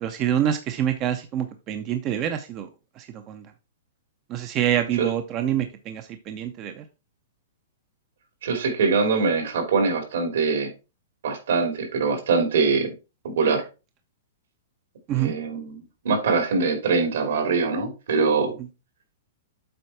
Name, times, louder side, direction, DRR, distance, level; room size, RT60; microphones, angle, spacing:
voice 1, 0.0-2.7 3.0-3.5 4.3-6.8 15.1-15.3, right 10 dB, 25° right, 8 dB, 0.6 m, -26 dB
voice 2, 8.4-10.7 11.2-12.9 13.2-13.6 15.1-18.6, right 4 dB, 70° right, 5 dB, 2.9 m, -23 dB
7.8 x 4.7 x 4.2 m, 0.29 s
hypercardioid pair, 165°, 0 cm